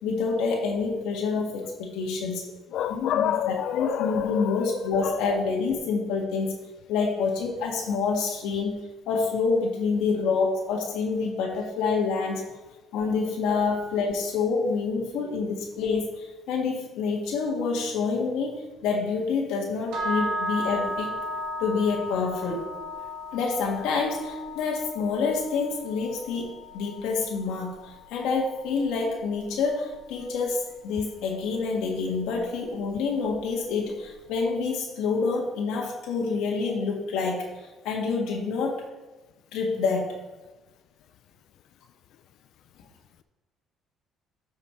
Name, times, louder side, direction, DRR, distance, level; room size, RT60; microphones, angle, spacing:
voice 1, 0.0-2.4 2.9-3.3 3.7-6.5 6.9-8.7 9.1-12.4 12.9-21.1 21.6-22.7 23.3-38.8 39.5-40.1, left 4 dB, 85° left, -1 dB, 1.7 m, -27 dB
voice 2, 2.7-5.2 7.9-8.0, left 10 dB, 60° left, 11 dB, 0.4 m, -28 dB
sound 1, 19.9-30.0, left 1 dB, 85° right, 2.6 m, -35 dB
13.0 x 5.7 x 4.4 m, 1.2 s
cardioid pair, 160°, 0 cm